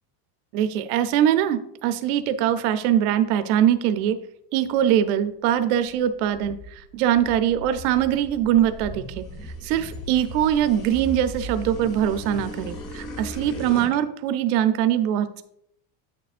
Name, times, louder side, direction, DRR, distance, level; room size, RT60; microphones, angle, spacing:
voice 1, 0.5-4.2 4.5-9.3 9.6-15.4, right 10 dB, 70° right, 10 dB, 0.7 m, -22 dB
sound 1, 5.9-14.0, equal, 40° left, 1.5 m, -37 dB
8.6 x 6.7 x 2.5 m, 0.73 s
cardioid pair, 160°, 47 cm